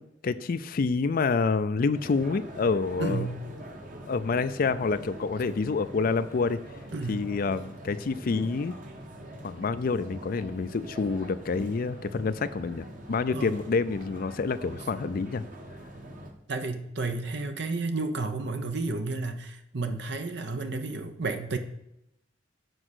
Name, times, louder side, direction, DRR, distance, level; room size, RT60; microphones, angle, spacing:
voice 1, 0.0-3.3 4.1-6.6 7.1-8.8 9.4-15.4, left 4 dB, 50° left, 12 dB, 0.4 m, -28 dB
sound 1, 1.9-16.3, right 1 dB, 45° right, 1.4 m, -44 dB
voice 2, 3.0-3.4 6.9-7.3 13.3-13.5 16.5-21.6, right 3 dB, 65° right, 7 dB, 0.9 m, -31 dB
7.9 x 5.0 x 6.3 m, 0.84 s
head